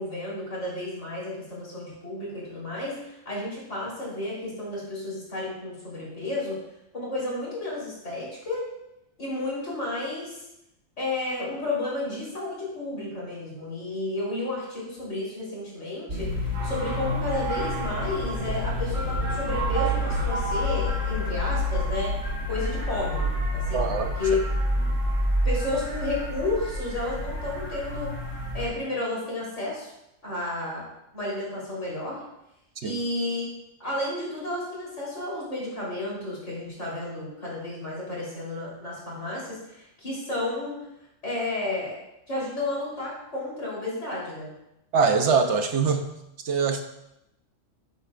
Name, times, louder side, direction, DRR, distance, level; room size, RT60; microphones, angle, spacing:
voice 1, 0.0-6.6 6.9-8.7 9.2-10.4 11.0-16.3 16.6-22.1 22.5-23.9 24.2-24.4 25.4-28.1 28.5-29.9 30.2-30.8 31.1-32.2 32.8-33.5 33.8-40.8 41.2-42.0 42.3-44.5, left 2 dB, 65° left, -6 dB, 3.9 m, -32 dB
sound 1, 16.1-28.7, equal, 90° right, 2.3 m, -28 dB
voice 2, 23.7-24.1 32.8-33.0 44.9-46.1 46.4-46.8, right 5 dB, 65° right, 6 dB, 1.0 m, -23 dB
9.8 x 9.2 x 2.4 m, 0.85 s
omnidirectional pair, 1.3 m